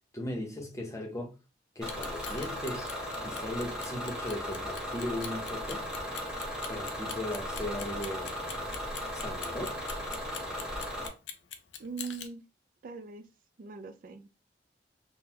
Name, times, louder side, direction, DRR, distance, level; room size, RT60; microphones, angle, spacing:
voice 1, 0.1-1.3 1.8-2.9 3.2-5.9 6.7-8.4 9.1-9.8, left 1 dB, 15° left, 0.6 m, -37 dB
Clock, 1.8-12.3, left 8 dB, 80° left, 0.5 m, -42 dB
Bus / Engine, 1.8-11.1, equal, 5° right, 0.9 m, -37 dB
voice 2, 11.8-12.4 12.8-13.3 13.6-14.3, right 5 dB, 50° right, 0.3 m, -41 dB
3.6 x 2.1 x 2.8 m
head